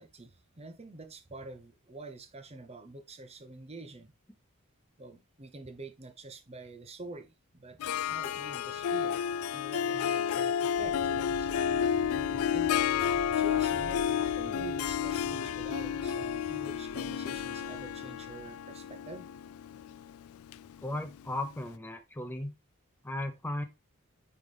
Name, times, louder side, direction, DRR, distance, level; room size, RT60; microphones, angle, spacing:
voice 1, 0.0-4.1 5.0-9.2 9.5-11.5 12.5-12.8 13.4-19.3, right 3 dB, 30° right, 0.7 m, -46 dB
Harp, 7.8-21.4, left 8 dB, 70° left, 0.3 m, -31 dB
sound 1, 10.8-18.6, right 2 dB, 70° right, 0.9 m, -48 dB
voice 2, 20.8-22.5 23.0-23.6, left 1 dB, 10° left, 0.5 m, -36 dB
9.6 x 3.6 x 3.3 m
head